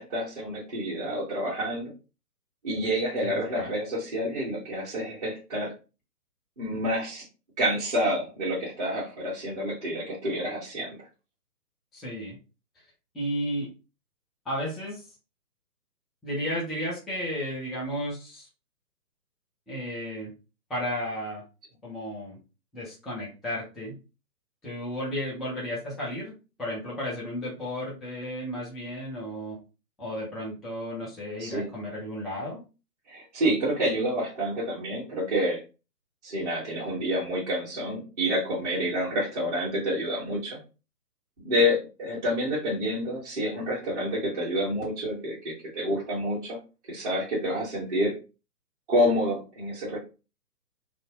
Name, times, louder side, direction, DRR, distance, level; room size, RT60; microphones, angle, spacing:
voice 1, 0.0-1.9 2.6-5.7 6.6-7.2 7.6-11.0 31.4-31.7 33.1-35.6 36.2-40.6 41.4-46.6 46.9-48.1 48.9-50.0, equal, 25° right, -8 dB, 0.8 m, -28 dB
voice 2, 3.2-3.7 11.9-12.4 13.1-13.7 14.5-15.0 16.2-18.5 19.7-20.3 20.7-21.4 21.8-22.4 22.7-24.0 24.6-26.3 26.6-29.6 30.0-32.6, equal, ahead, -7 dB, 0.3 m, -33 dB
2.5 x 2.0 x 3.6 m, 0.31 s
hypercardioid pair, 155°, 48 cm